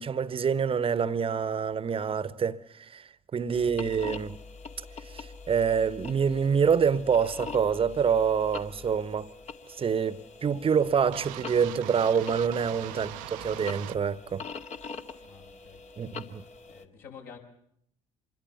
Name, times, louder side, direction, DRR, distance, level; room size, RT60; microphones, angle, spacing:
voice 1, 0.0-4.4 5.1-9.3 9.8-14.4 16.0-16.4, right 6 dB, 35° right, 1.2 m, -26 dB
sound 1, 3.5-16.9, left 4 dB, 40° left, 2.1 m, -44 dB
sound 2, 11.1-14.0, right 16 dB, 70° right, 0.9 m, -41 dB
voice 2, 15.2-15.8 16.7-17.4, left 6 dB, 60° left, 6.8 m, -49 dB
26.0 x 22.0 x 7.2 m
figure-of-eight pair, 55°, 17 cm